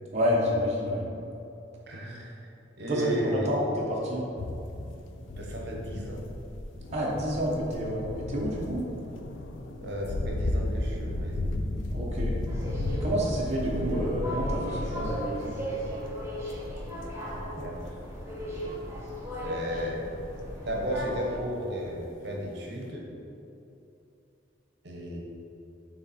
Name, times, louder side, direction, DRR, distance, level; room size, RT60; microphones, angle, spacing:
voice 1, 0.1-1.0 2.9-4.2 6.9-8.9 11.9-12.3 12.9-15.6, equal, 35° right, -5 dB, 0.8 m, -29 dB
voice 2, 1.9-2.3 2.8-3.5 5.4-6.2 9.8-11.5 17.6-17.8 19.4-20.0 20.6-23.0 24.8-25.2, equal, 65° right, -1 dB, 1.0 m, -34 dB
sound 1, 4.4-18.1 18.3-19.4 19.8-20.5 20.7-20.9 21.5-21.6, left 1 dB, 90° left, 0.5 m, -34 dB
sound 2, 12.5-21.4, equal, 15° right, 1.1 m, -37 dB
6.6 x 3.4 x 4.2 m, 2.8 s
head